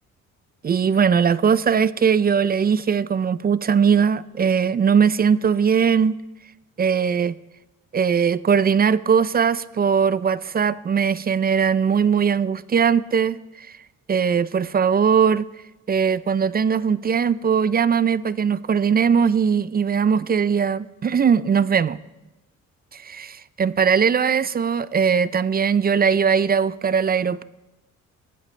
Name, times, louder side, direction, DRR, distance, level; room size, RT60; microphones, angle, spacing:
voice 1, 0.6-6.2 6.8-7.4 7.9-13.7 14.1-15.4 15.9-22.0 22.9-27.4, right 6 dB, 30° right, 0.5 m, -20 dB
19.5 x 15.0 x 3.3 m
cardioid pair, 90°, 30 cm